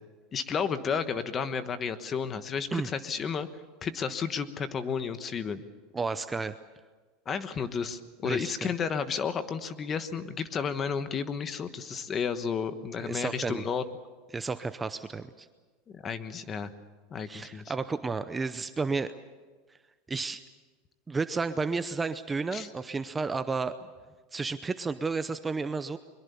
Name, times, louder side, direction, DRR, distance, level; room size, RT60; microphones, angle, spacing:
voice 1, 0.3-3.5 3.8-5.6 7.3-13.8 15.9-16.7 17.1-17.7 22.5-22.7, left 6 dB, 25° left, 11 dB, 1.2 m, -32 dB
voice 2, 5.9-6.6 8.2-8.7 13.0-13.6 14.3-15.5 17.3-19.1 20.1-20.4 21.1-23.7 24.3-26.0, right 4 dB, 15° right, 11 dB, 0.6 m, -32 dB
22.5 x 22.5 x 7.0 m, 1.4 s
supercardioid pair, 150°, 0 cm